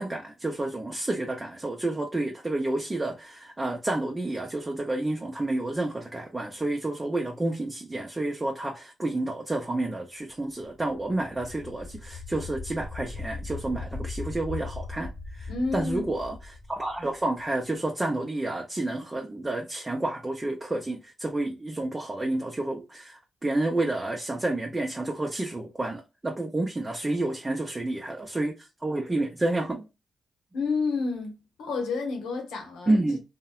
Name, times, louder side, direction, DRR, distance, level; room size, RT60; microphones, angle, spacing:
voice 1, 0.0-16.4 16.7-29.9 32.9-33.2, right 2 dB, 25° right, 0.6 m, -30 dB
sound 1, 10.7-17.5, left 3 dB, 30° left, 0.7 m, -39 dB
voice 2, 15.5-16.1 30.5-33.0, left 4 dB, 85° left, 0.8 m, -30 dB
2.6 x 2.1 x 2.3 m
supercardioid pair, 45°, 0 cm